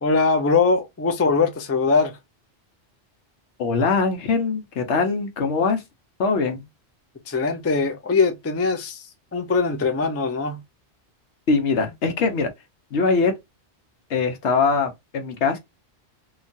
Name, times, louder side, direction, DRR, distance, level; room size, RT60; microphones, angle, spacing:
voice 1, 0.0-2.1 7.3-9.0 9.3-10.6, left 4 dB, 25° left, 0.3 m, -21 dB
voice 2, 3.6-5.8 6.2-6.6 11.5-12.5 12.9-13.3 14.1-15.6, left 4 dB, 80° left, 1.1 m, -22 dB
3.0 x 2.3 x 2.5 m
omnidirectional pair, 1.2 m